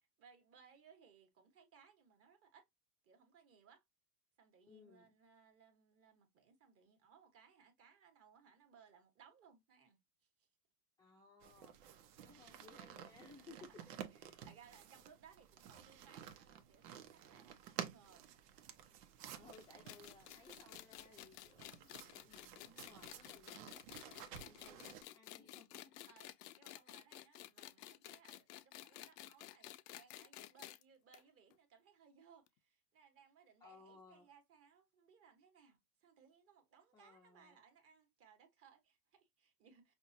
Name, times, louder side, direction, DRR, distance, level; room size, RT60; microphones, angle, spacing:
voice 1, 0.2-2.6 3.0-3.8 4.4-10.0 13.5-13.6 13.9-18.3 26.0-26.3 26.6-39.9, right 7 dB, 30° right, 1.4 m, -65 dB
voice 2, 4.7-5.2 11.0-11.8 12.2-13.9 19.3-26.1 33.6-34.3 36.9-37.6, left 4 dB, 10° left, 0.5 m, -62 dB
sound 1, 11.4-25.0, right 9 dB, 90° right, 1.0 m, -53 dB
sound 2, 19.5-30.8 31.1-31.2 31.5-31.6 32.5-32.6, left 14 dB, 85° left, 0.7 m, -53 dB
5.8 x 2.5 x 2.7 m
supercardioid pair, 145°, 46 cm